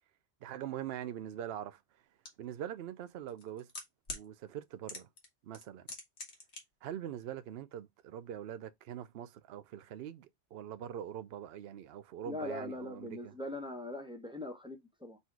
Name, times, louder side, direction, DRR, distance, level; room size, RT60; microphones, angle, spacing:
voice 1, 0.4-1.8 2.4-3.7 4.1-5.1 5.4-5.9 6.8-13.4, right 10 dB, 65° right, 0.8 m, -43 dB
sound 1, 2.2-2.3 3.3-4.2 4.9-5.3 5.5-6.6 6.9-7.0, left 3 dB, 70° left, 1.6 m, -42 dB
voice 2, 12.2-15.2, left 1 dB, 5° right, 0.8 m, -41 dB
4.1 x 2.8 x 4.5 m
omnidirectional pair, 1.2 m